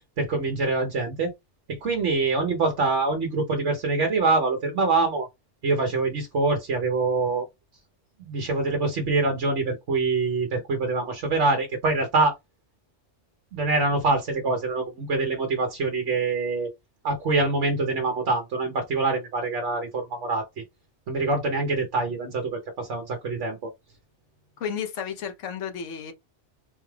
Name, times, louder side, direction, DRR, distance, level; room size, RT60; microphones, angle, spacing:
voice 1, 0.2-1.3 1.7-5.3 5.6-7.5 8.2-12.3 13.5-16.7 17.0-20.4 21.1-23.7, right 3 dB, 80° right, 1.3 m, -25 dB
voice 2, 24.6-26.1, left 7 dB, 85° left, 1.2 m, -32 dB
4.1 x 2.3 x 3.2 m
omnidirectional pair, 1.2 m